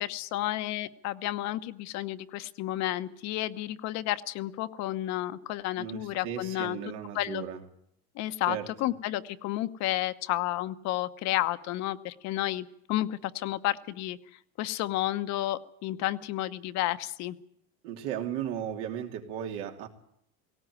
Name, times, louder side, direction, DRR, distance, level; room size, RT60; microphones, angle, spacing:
voice 1, 0.0-6.8 7.1-7.4 8.2-14.2 14.6-17.4, left 15 dB, 55° left, 11 dB, 1.0 m, -31 dB
voice 2, 5.8-7.6 8.5-8.7 17.8-19.9, right 9 dB, 80° right, 3 dB, 2.9 m, -35 dB
18.5 x 17.5 x 9.4 m, 0.71 s
cardioid pair, 140°, 32 cm